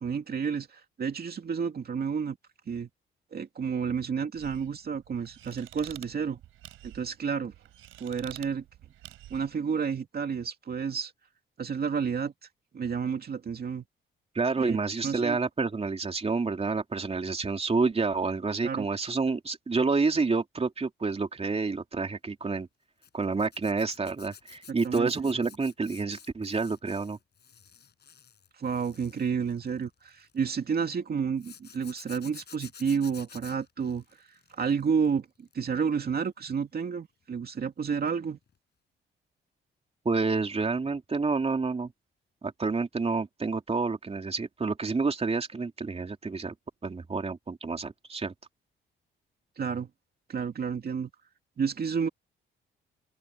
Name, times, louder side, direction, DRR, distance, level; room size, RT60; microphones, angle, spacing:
voice 1, 0.0-2.4 2.7-2.9 3.3-6.4 6.8-7.5 8.0-8.6 9.3-11.1 11.6-12.3 12.7-13.8 14.6-14.8 15.0-15.4 18.6-18.9 24.8-25.1 28.5-34.3 34.5-38.4 49.6-49.9 50.3-51.1 51.6-52.1, right 6 dB, 50° right, 2.5 m, -30 dB
sound 1, 4.3-9.6, right 13 dB, 90° right, 4.7 m, -49 dB
voice 2, 14.3-22.7 23.1-27.2 40.0-41.9 42.4-46.5 46.8-48.3, right 4 dB, 30° right, 3.0 m, -29 dB
Zipper (clothing), 23.0-30.4 31.4-35.1 35.4-35.8 38.1-38.2 38.5-38.6, left 7 dB, 55° left, 5.2 m, -51 dB
open air
cardioid pair, 80°, 20 cm